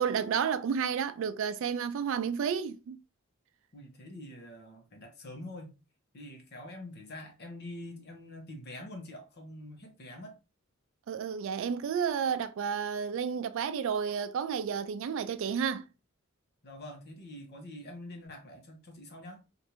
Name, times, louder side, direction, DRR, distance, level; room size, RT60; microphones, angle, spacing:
voice 1, 0.0-3.0 11.1-15.9, right 7 dB, 65° right, 0.3 m, -31 dB
voice 2, 3.7-5.7 6.1-10.3 16.6-19.4, left 1 dB, 50° left, 0.9 m, -45 dB
3.2 x 2.5 x 2.8 m
head